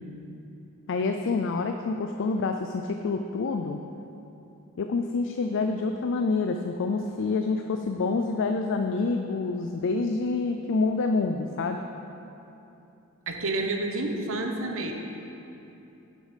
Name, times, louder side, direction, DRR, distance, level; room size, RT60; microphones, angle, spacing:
voice 1, 0.9-3.8 4.8-11.8, left 4 dB, 55° left, 5 dB, 0.4 m, -27 dB
voice 2, 13.3-14.9, right 2 dB, 65° right, 3 dB, 1.0 m, -29 dB
11.0 x 6.4 x 5.1 m, 2.9 s
head